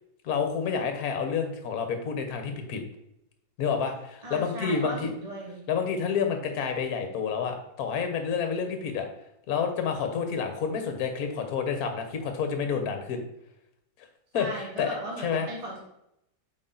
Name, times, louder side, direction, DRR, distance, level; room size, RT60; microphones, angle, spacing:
voice 1, 0.2-2.8 3.6-5.1 5.7-9.1 9.5-13.2 14.3-14.9 15.2-15.5, left 6 dB, 50° left, 6 dB, 1.3 m, -29 dB
voice 2, 4.2-5.7 14.3-15.8, right 1 dB, 20° right, -3 dB, 1.4 m, -37 dB
8.3 x 4.5 x 3.9 m, 0.81 s
omnidirectional pair, 2.2 m